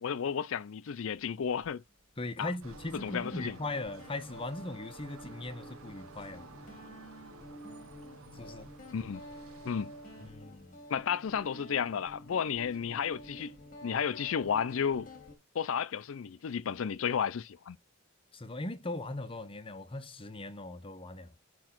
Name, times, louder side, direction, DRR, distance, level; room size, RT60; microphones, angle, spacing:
voice 1, 0.0-1.8 2.4-2.5 3.0-3.6 8.9-9.2 9.6-9.9 10.9-13.5 13.8-15.1 15.5-17.8, left 7 dB, 70° left, 0.4 m, -32 dB
Guitar, 1.6-1.7 2.7-15.3, equal, 40° left, 2.1 m, -50 dB
voice 2, 2.2-6.4 8.3-8.7 10.2-10.8 18.3-21.3, left 2 dB, 25° left, 0.7 m, -39 dB
sound 1, 2.6-10.3, right 3 dB, 90° right, 1.0 m, -53 dB
5.1 x 4.7 x 5.8 m
head